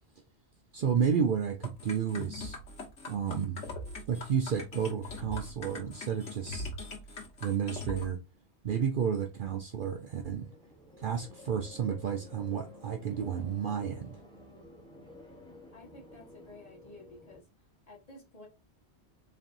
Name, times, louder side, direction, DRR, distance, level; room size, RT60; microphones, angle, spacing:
voice 1, 0.7-2.6 3.1-3.6 4.1-6.7 7.4-8.2 8.6-10.5 11.0-14.2, right 7 dB, 55° right, 0.7 m, -31 dB
sound 1, 1.6-8.1, left 2 dB, 85° left, 1.6 m, -41 dB
sound 2, 10.0-17.4, left 1 dB, 5° left, 0.8 m, -53 dB
voice 2, 15.7-17.4 17.9-18.5, left 2 dB, 35° left, 1.5 m, -52 dB
4.2 x 3.3 x 2.5 m
omnidirectional pair, 1.2 m